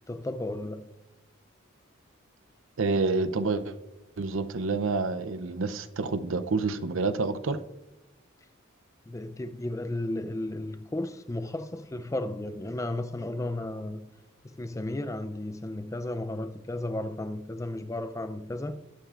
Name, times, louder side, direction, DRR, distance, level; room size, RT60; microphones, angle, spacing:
voice 1, 0.1-0.8 9.1-14.1 14.4-18.8, left 1 dB, 15° left, 0.4 m, -34 dB
voice 2, 2.8-3.8 4.2-7.6, right 3 dB, 70° right, 0.6 m, -28 dB
19.5 x 9.0 x 2.5 m
head